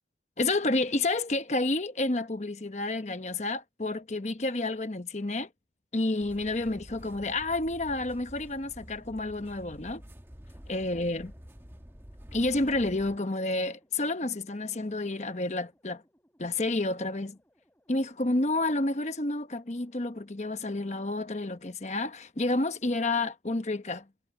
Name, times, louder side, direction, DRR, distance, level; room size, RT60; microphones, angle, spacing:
voice 1, 0.4-5.5 5.9-10.0 10.7-11.3 12.3-16.0 16.4-17.4 17.9-24.0, left 2 dB, 40° left, 1.0 m, -30 dB
sound 1, 6.2-13.2, equal, 15° right, 1.4 m, -49 dB
sound 2, 10.2-20.2, equal, 10° left, 6.5 m, -69 dB
head